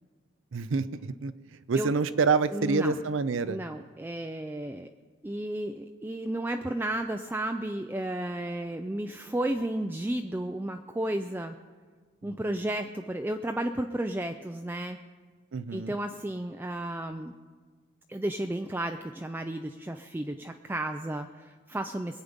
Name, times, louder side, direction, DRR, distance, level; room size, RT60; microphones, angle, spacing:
voice 1, 0.5-1.3 1.7-3.6 12.2-12.3 15.5-16.0, right 4 dB, 70° right, 13 dB, 0.5 m, -27 dB
voice 2, 2.5-3.0 3.4-4.9 5.2-11.6 12.2-15.0 15.7-17.3 18.1-22.2, right 1 dB, 10° right, 6 dB, 0.3 m, -33 dB
22.0 x 8.5 x 5.2 m, 1.5 s
head